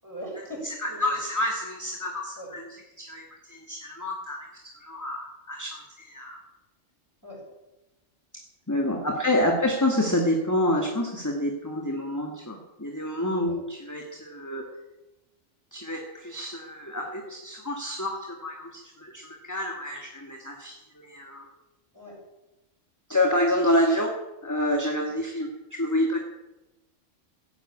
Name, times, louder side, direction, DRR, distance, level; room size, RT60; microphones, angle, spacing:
voice 1, 0.0-1.2 2.4-2.6 7.2-7.5 8.9-9.2 13.5-13.6 21.9-22.2 25.1-25.2, right 1 dB, 15° right, -3 dB, 7.2 m, -40 dB
voice 2, 0.8-2.6 3.0-6.4 8.7-14.6 15.7-21.5 23.1-24.1 24.4-26.2, left 1 dB, 15° left, 0 dB, 2.1 m, -28 dB
16.5 x 9.5 x 8.7 m, 1.0 s
omnidirectional pair, 1.3 m